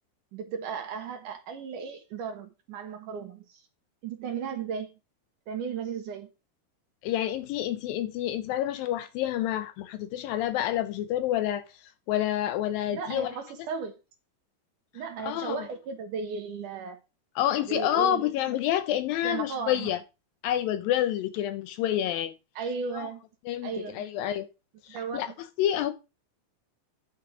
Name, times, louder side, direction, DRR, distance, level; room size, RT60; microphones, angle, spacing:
voice 1, 0.3-3.6 4.0-4.9 5.5-6.3 12.9-13.9 14.9-17.0 17.6-18.6 19.2-19.9 22.6-23.2 23.6-24.0 24.9-25.2, right 6 dB, 65° right, 2.5 m, -35 dB
voice 2, 7.0-11.6 12.1-13.3 15.2-15.6 17.4-20.0 20.4-22.3 23.0-23.1 23.5-24.5 24.8-25.3 25.6-25.9, left 12 dB, 80° left, 2.2 m, -28 dB
10.5 x 5.9 x 4.8 m
omnidirectional pair, 4.4 m